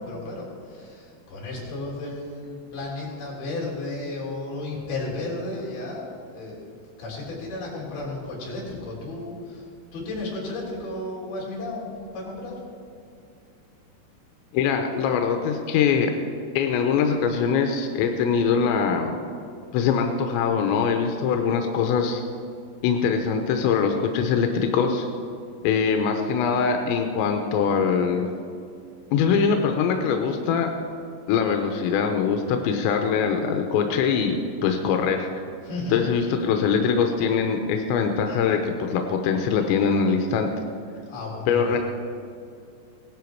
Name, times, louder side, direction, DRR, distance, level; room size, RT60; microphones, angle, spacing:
voice 1, 0.0-6.7 7.0-12.6 35.6-36.1 41.1-41.8, left 2 dB, 60° left, -4 dB, 5.4 m, -33 dB
voice 2, 14.5-16.1 16.6-19.2 19.7-22.2 22.8-25.1 25.6-28.3 29.1-30.7 31.3-35.3 35.9-40.5 41.5-41.8, left 6 dB, 90° left, 4 dB, 3.1 m, -23 dB
17.5 x 12.0 x 4.7 m, 2.5 s
omnidirectional pair, 5.3 m